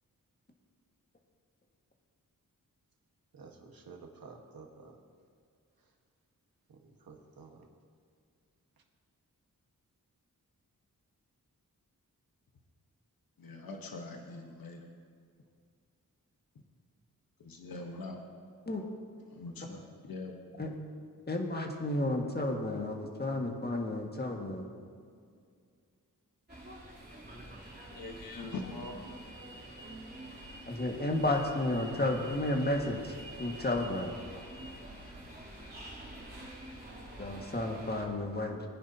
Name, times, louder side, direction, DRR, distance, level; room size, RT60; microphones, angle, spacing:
voice 1, 3.3-5.0 6.7-7.7, right 4 dB, 90° right, 2 dB, 1.5 m, -52 dB
voice 2, 13.4-14.9 17.4-18.2 19.3-20.3 27.9-29.0, left 3 dB, 85° left, 2 dB, 1.3 m, -42 dB
voice 3, 21.3-24.7 30.7-33.1 33.4-34.2 37.2-38.6, left 1 dB, 30° left, 1 dB, 1.8 m, -32 dB
sound 1, 26.5-38.1, right 1 dB, 30° right, 3.3 m, -47 dB
20.0 x 10.0 x 2.8 m, 2.2 s
wide cardioid pair, 70°, 34 cm